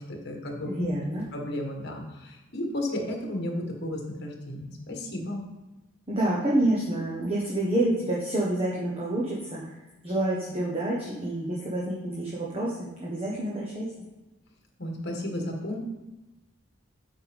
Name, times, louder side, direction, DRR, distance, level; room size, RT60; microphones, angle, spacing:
voice 1, 0.0-0.9 1.3-5.4 14.8-15.8, left 1 dB, 50° left, 1 dB, 1.5 m, -33 dB
voice 2, 0.6-1.2 6.1-9.8 10.0-13.9, right 1 dB, 30° right, -5 dB, 1.3 m, -28 dB
8.3 x 5.8 x 3.6 m, 1.1 s
head